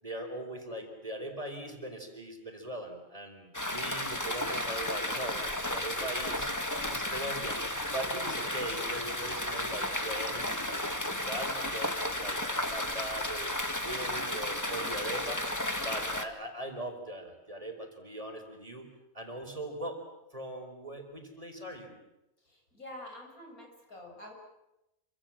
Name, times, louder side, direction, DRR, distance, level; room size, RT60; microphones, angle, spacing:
voice 1, 0.0-7.6 7.9-13.5 13.8-15.4 15.8-18.9 19.1-20.0 20.3-22.0, right 1 dB, 25° right, 4 dB, 4.7 m, -40 dB
sound 1, 3.5-16.2, left 1 dB, 10° left, 1.8 m, -33 dB
voice 2, 22.5-24.3, left 1 dB, 85° left, 1 dB, 7.4 m, -47 dB
28.0 x 25.5 x 7.6 m, 0.91 s
omnidirectional pair, 1.5 m